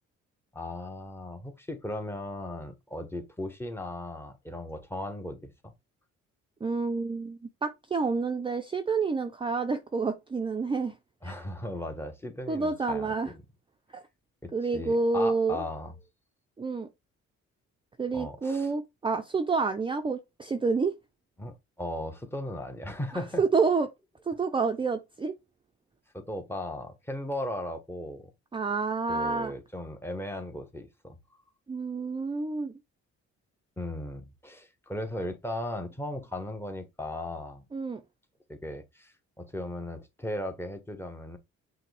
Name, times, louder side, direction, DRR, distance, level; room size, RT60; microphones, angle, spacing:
voice 1, 0.5-5.7 11.2-13.3 14.4-15.9 18.1-18.7 21.4-23.4 26.1-28.3 29.1-31.2 33.8-37.6 38.5-41.4, left 1 dB, 10° left, 0.8 m, -37 dB
voice 2, 6.6-11.0 11.2-11.4 12.5-13.3 13.9-14.0 14.5-15.6 16.6-16.9 18.0-20.9 23.4-23.9 24.3-25.3 28.5-29.5 31.7-32.7 37.7-38.0, right 4 dB, 15° right, 0.4 m, -28 dB
5.7 x 2.1 x 3.2 m
cardioid pair, 90°, 30 cm